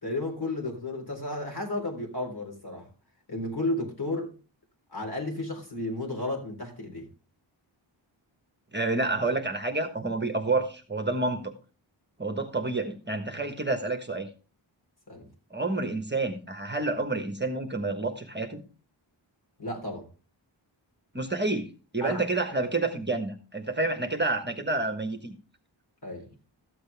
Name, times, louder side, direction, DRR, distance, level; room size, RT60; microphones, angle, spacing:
voice 1, 0.0-2.9 3.3-4.3 4.9-7.1 15.1-15.3 19.6-20.0 22.0-22.2 26.0-26.3, left 2 dB, 50° left, 1 dB, 3.9 m, -33 dB
voice 2, 8.7-11.5 12.2-14.3 15.5-18.6 21.1-21.7 21.9-25.3, right 2 dB, 20° right, 5 dB, 1.3 m, -29 dB
13.5 x 7.9 x 3.4 m, 0.36 s
wide cardioid pair, 70°, 47 cm